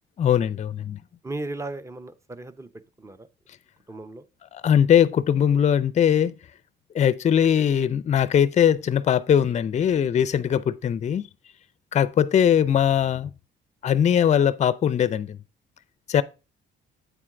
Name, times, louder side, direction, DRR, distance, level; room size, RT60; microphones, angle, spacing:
voice 1, 0.2-1.0 4.5-6.3 6.9-11.3 11.9-13.3 13.8-15.4 16.1-16.2, left 9 dB, 35° left, 0.4 m, -20 dB
voice 2, 1.2-2.7 3.0-3.3 3.9-4.3 7.3-7.5, right 2 dB, 15° right, 0.6 m, -36 dB
8.2 x 4.4 x 3.6 m
cardioid pair, 90°, 20 cm